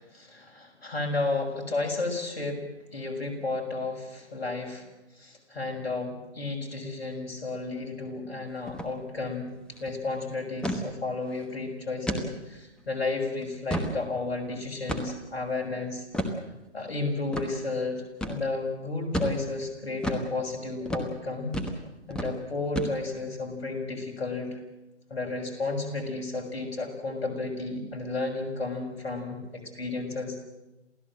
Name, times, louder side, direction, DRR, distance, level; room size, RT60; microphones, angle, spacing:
voice 1, 0.0-2.6 2.9-4.9 5.2-9.5 9.8-16.0 16.7-18.0 18.3-21.6 22.1-24.6 25.1-30.4, left 3 dB, 60° left, 2 dB, 6.7 m, -32 dB
sound 1, 8.7-8.9 9.2-9.3 9.7-9.9 10.6-10.8 11.3-11.4 12.1-12.3 12.8-12.9 13.4-14.0 14.9-15.3 16.1-16.4 17.3-17.5 18.2-18.4 19.1-19.4 20.0-20.3 20.9-21.1 21.5-21.8 22.1-22.3 22.8-23.2, equal, ahead, 1.2 m, -31 dB
28.0 x 16.5 x 7.7 m, 0.98 s
figure-of-eight pair, 135°, 35 cm